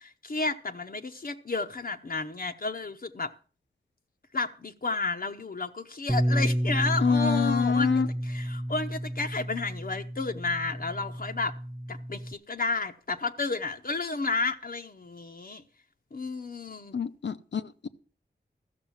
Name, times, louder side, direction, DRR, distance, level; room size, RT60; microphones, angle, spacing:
voice 1, 0.0-3.3 4.3-11.5 11.9-15.6 16.1-17.0, left 3 dB, 50° left, 0.9 m, -32 dB
Bass guitar, 6.1-12.3, equal, 5° right, 0.6 m, -30 dB
voice 2, 7.0-8.1 16.9-17.9, left 6 dB, 80° left, 0.8 m, -26 dB
14.0 x 6.7 x 7.3 m
wide cardioid pair, 65°, 18 cm